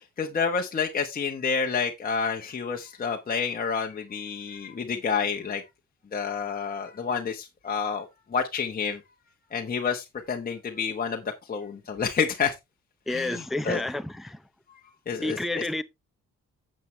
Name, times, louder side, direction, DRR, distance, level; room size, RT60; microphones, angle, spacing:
voice 1, 0.2-5.6 6.1-9.0 9.5-12.5 13.1-13.8 15.1-15.6, left 6 dB, 30° left, 1.2 m, -29 dB
voice 2, 13.1-14.4 15.2-15.8, left 2 dB, ahead, 0.6 m, -30 dB
9.4 x 7.6 x 3.2 m
cardioid pair, 90°, 30 cm